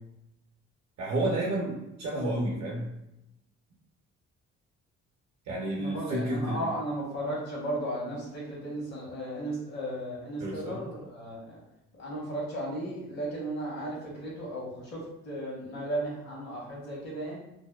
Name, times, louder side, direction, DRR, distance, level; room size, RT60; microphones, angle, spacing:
voice 1, 1.0-2.9 5.5-6.6 10.4-10.8, right 1 dB, 65° right, -4 dB, 0.6 m, -30 dB
voice 2, 5.8-11.6 11.9-17.4, right 1 dB, 60° left, -4 dB, 1.2 m, -35 dB
2.6 x 2.1 x 2.2 m, 0.88 s
cardioid pair, 90°, 30 cm